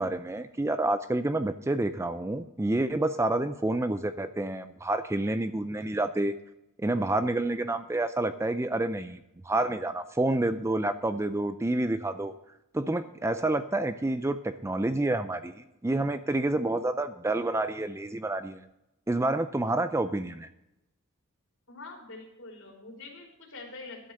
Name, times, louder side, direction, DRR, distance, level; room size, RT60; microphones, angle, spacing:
voice 1, 0.0-6.4 6.8-12.3 12.7-18.6 19.1-20.5, right 2 dB, 10° right, 11 dB, 0.4 m, -28 dB
voice 2, 21.7-24.1, left 3 dB, 60° left, 1 dB, 3.4 m, -45 dB
12.0 x 7.9 x 6.6 m, 0.89 s
head